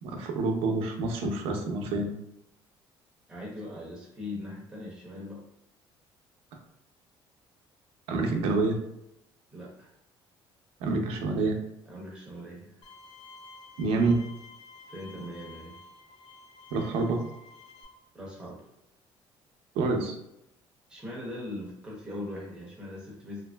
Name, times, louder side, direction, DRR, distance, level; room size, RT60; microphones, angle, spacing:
voice 1, 0.0-2.1 8.1-8.8 10.8-11.6 13.8-14.2 16.7-17.2 19.8-20.2, right 3 dB, 85° right, 3 dB, 0.5 m, -27 dB
voice 2, 3.3-5.4 9.5-9.9 11.9-12.8 14.9-15.8 18.1-18.6 20.9-23.4, left 1 dB, 10° right, -5 dB, 0.7 m, -40 dB
Bowed string instrument, 12.8-17.8, left 3 dB, 70° left, 0.8 m, -51 dB
3.0 x 2.6 x 2.2 m, 0.81 s
cardioid pair, 175°, 10 cm